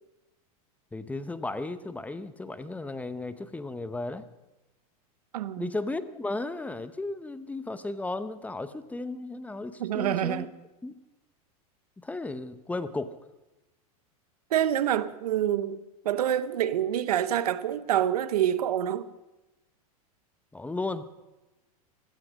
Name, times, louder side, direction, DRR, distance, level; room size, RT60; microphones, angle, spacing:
voice 1, 0.9-4.3 5.6-10.5 10.8-10.9 12.0-13.1 20.5-21.1, left 2 dB, 10° left, 0.7 m, -35 dB
voice 2, 5.3-5.7 9.8-10.5 14.5-15.8 16.0-19.1, right 11 dB, 90° right, 0.9 m, -26 dB
16.0 x 13.0 x 6.3 m
supercardioid pair, 125°, 19 cm